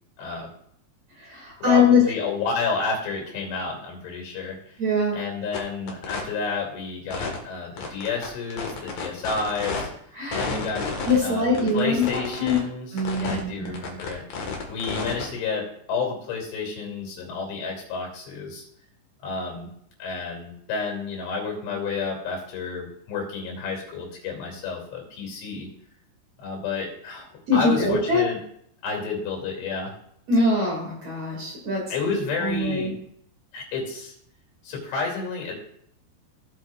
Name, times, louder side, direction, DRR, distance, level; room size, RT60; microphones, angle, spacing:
voice 1, 0.2-0.5 1.6-4.8 5.1-9.9 10.4-10.9 11.2-11.5 11.7-12.9 13.2-14.2 14.7-18.6 19.2-19.7 20.0-25.7 26.4-28.4 28.8-29.9 31.9-32.9 33.5-34.1 34.6-35.5, left 4 dB, 85° left, 0 dB, 5.2 m, -30 dB
voice 2, 1.1-2.0 4.8-5.2 10.1-10.5 11.1-12.6 12.9-13.7 27.5-28.2 30.3-32.9, left 3 dB, 45° right, -3 dB, 2.8 m, -23 dB
sound 1, 5.5-5.6 5.9-6.2 7.1-7.4 7.8-9.8 10.3-11.2 11.5-12.6 13.0-13.4 13.6-15.2, left 4 dB, 55° left, 2.1 m, -30 dB
17.0 x 8.1 x 2.5 m, 0.69 s
omnidirectional pair, 5.3 m